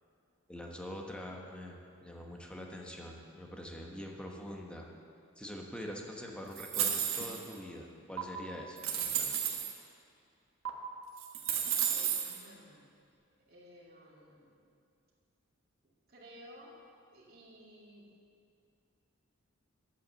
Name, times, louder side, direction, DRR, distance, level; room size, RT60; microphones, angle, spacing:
voice 1, 0.5-4.9 5.4-9.4, equal, 5° left, 0 dB, 1.1 m, -44 dB
sound 1, 6.6-7.5 8.2-8.3 8.8-9.7 10.7-10.8 11.2-12.4, right 9 dB, 70° right, 1.5 m, -32 dB
voice 2, 11.8-12.9 13.5-14.5 16.1-16.8 17.1-18.0, equal, 45° right, -4 dB, 2.5 m, -55 dB
10.5 x 8.3 x 7.6 m, 2.5 s
head